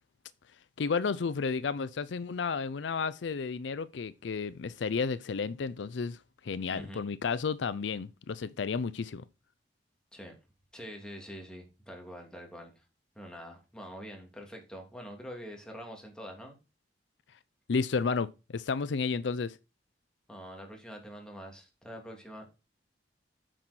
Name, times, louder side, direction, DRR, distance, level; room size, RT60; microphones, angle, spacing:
voice 1, 0.8-6.2 6.4-9.2 17.7-19.6, left 5 dB, 70° left, 0.5 m, -32 dB
voice 2, 6.7-7.0 10.1-10.3 10.7-12.9 13.1-16.6 20.3-22.5, equal, 5° left, 2.7 m, -45 dB
9.0 x 6.1 x 4.4 m
head